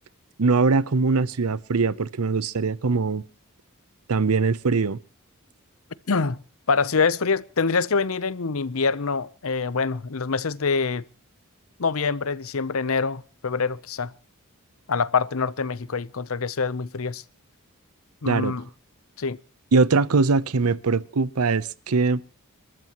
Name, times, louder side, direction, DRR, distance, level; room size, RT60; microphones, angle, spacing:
voice 1, 0.4-3.2 4.1-5.0 18.3-18.5 19.7-22.2, right 4 dB, 85° right, 0.7 m, -22 dB
voice 2, 6.1-6.4 6.7-11.0 11.8-14.1 14.9-17.2 18.2-18.6 19.2-19.4, left 4 dB, 70° left, 0.7 m, -25 dB
29.5 x 14.0 x 3.0 m
head